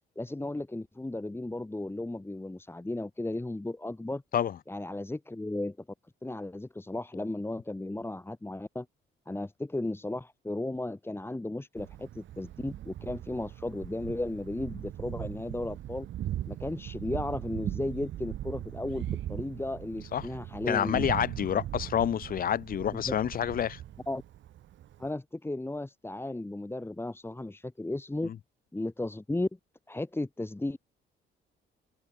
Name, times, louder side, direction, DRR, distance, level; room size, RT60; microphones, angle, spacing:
voice 1, 0.2-4.2 4.7-5.8 6.2-8.9 9.3-16.1 16.5-21.0 23.1-23.2 24.1-24.2 25.0-28.3 28.7-29.5 29.9-30.8, left 2 dB, 10° left, 2.1 m, -35 dB
Thunder, 11.8-25.1, right 12 dB, 70° right, 1.2 m, -39 dB
voice 2, 20.7-23.8, left 9 dB, 45° left, 0.6 m, -28 dB
cardioid pair, 90°, 20 cm